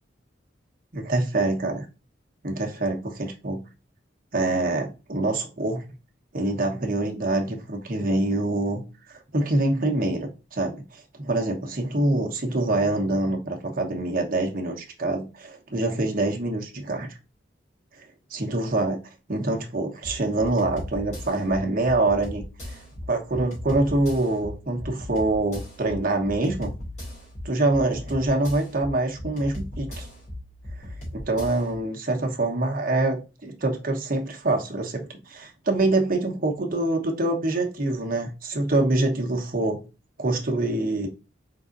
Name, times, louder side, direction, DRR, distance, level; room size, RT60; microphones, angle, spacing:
voice 1, 0.9-1.8 2.4-3.6 4.3-5.8 6.3-8.8 9.1-17.1 18.3-19.0 19.3-22.8 23.1-26.7 27.4-30.0 31.1-39.8 40.2-41.1, right 2 dB, 50° right, 1.1 m, -25 dB
sound 1, 20.0-31.7, left 1 dB, 40° left, 2.4 m, -38 dB
4.9 x 3.9 x 2.6 m
head